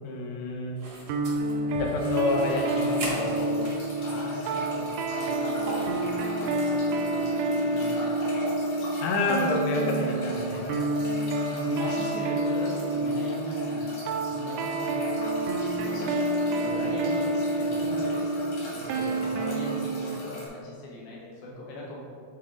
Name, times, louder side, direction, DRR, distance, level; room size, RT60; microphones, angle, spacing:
voice 1, 0.0-0.8 1.6-3.6 9.0-10.9, left 3 dB, 85° left, 0 dB, 2.0 m, -29 dB
sound 1, 0.8-4.4 4.8-4.9 5.6-6.1, right 1 dB, 60° right, 1.4 m, -38 dB
sound 2, 1.1-20.2, right 2 dB, 85° right, 2.4 m, -29 dB
sound 3, 2.0-20.5, left 1 dB, 50° left, 2.6 m, -39 dB
voice 2, 4.0-8.9 11.2-13.9 14.2-16.2 16.6-22.0, left 1 dB, 65° left, -4 dB, 2.9 m, -40 dB
10.5 x 4.5 x 3.7 m, 2.5 s
omnidirectional pair, 5.3 m